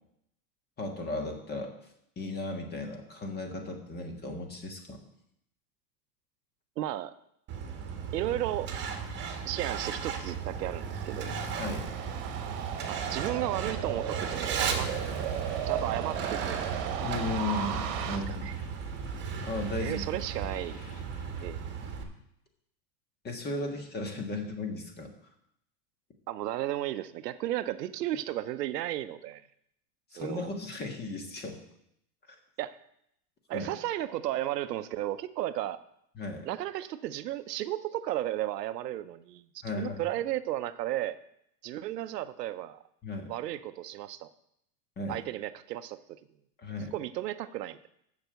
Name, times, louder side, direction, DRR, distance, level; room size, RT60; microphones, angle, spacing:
voice 1, 0.8-1.7 2.2-5.0 11.6-11.9 17.0-18.5 19.4-20.0 23.2-25.1 30.1-31.6 33.5-33.7 36.1-36.5 39.6-40.0 43.0-43.3 45.0-45.2 46.6-46.9, left 2 dB, 20° left, 4 dB, 1.6 m, -35 dB
voice 2, 6.8-7.1 8.1-8.7 9.4-11.4 12.9-14.9 15.7-17.0 18.1-18.5 19.8-20.8 21.4-21.6 26.3-29.4 30.2-30.5 32.6-32.8 33.5-35.8 36.5-39.4 39.8-41.2 41.6-42.8 43.3-44.3 45.1-46.0 46.9-47.9, right 13 dB, 80° right, 13 dB, 0.8 m, -34 dB
Truck, 7.5-22.0, right 6 dB, 20° right, 1.6 m, -36 dB
sound 1, 10.5-18.2, right 9 dB, 45° right, 1.3 m, -36 dB
sound 2, 14.3-21.5, left 2 dB, 70° left, 2.0 m, -50 dB
7.0 x 6.9 x 7.9 m, 0.75 s
supercardioid pair, 135°, 48 cm